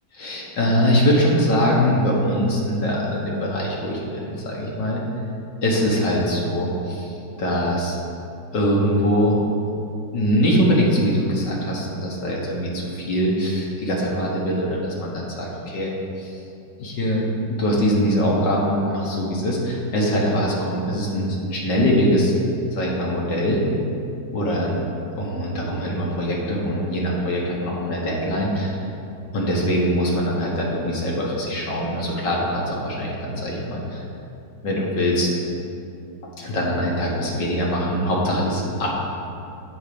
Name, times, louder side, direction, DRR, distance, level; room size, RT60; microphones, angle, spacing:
voice 1, 0.1-5.0 5.6-8.0 8.5-9.4 10.1-16.4 16.8-22.3 22.7-23.6 24.3-24.8 25.2-28.8 29.3-34.0 34.6-35.3 36.4-38.9, equal, 70° left, -3 dB, 1.8 m, -22 dB
8.0 x 4.4 x 6.7 m, 2.6 s
omnidirectional pair, 2.0 m